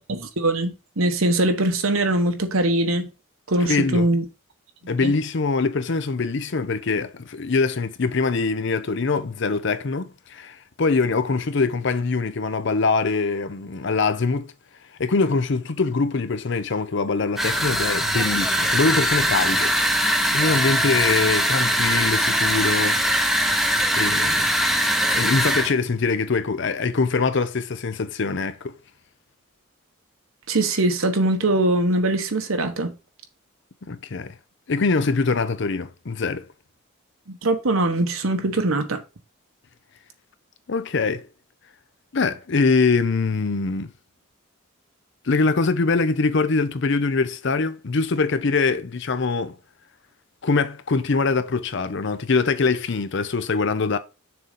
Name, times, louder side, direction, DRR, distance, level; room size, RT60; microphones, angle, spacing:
voice 1, 0.0-3.1 3.5-4.2 5.0-5.1 30.5-32.9 37.3-39.0, right 2 dB, 80° right, 1.1 m, -22 dB
voice 2, 3.6-4.1 4.9-14.5 15.0-19.7 20.3-23.0 24.0-24.5 25.1-28.7 33.9-34.3 34.7-36.5 40.7-41.2 42.1-43.9 45.2-49.6 50.4-54.0, left 4 dB, 55° left, 0.6 m, -23 dB
sound 1, 17.4-25.7, equal, ahead, 0.7 m, -21 dB
6.7 x 3.9 x 5.3 m
head